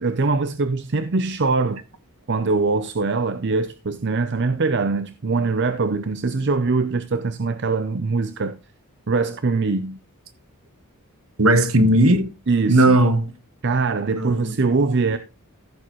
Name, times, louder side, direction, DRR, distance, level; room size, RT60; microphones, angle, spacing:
voice 1, 0.0-1.8 2.3-8.6 9.1-10.0 12.5-13.0 13.6-15.2, right 3 dB, 50° right, 0.6 m, -22 dB
voice 2, 11.4-12.3 12.7-13.3 14.1-14.6, right 1 dB, 65° right, 1.3 m, -17 dB
15.0 x 6.9 x 3.1 m
head